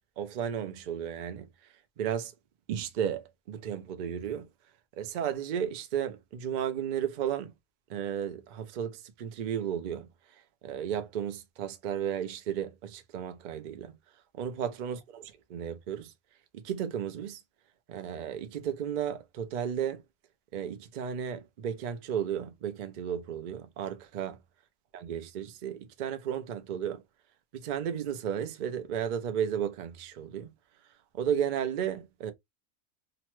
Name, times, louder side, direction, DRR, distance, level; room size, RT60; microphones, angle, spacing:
voice 1, 0.2-1.5 2.0-2.3 2.7-4.5 5.0-7.5 7.9-10.1 10.6-14.0 14.4-16.1 16.5-17.4 17.9-20.0 20.5-24.4 24.9-27.0 27.5-30.5 31.1-32.3, right 9 dB, 85° right, 0.4 m, -34 dB
3.0 x 2.1 x 2.9 m
omnidirectional pair, 1.4 m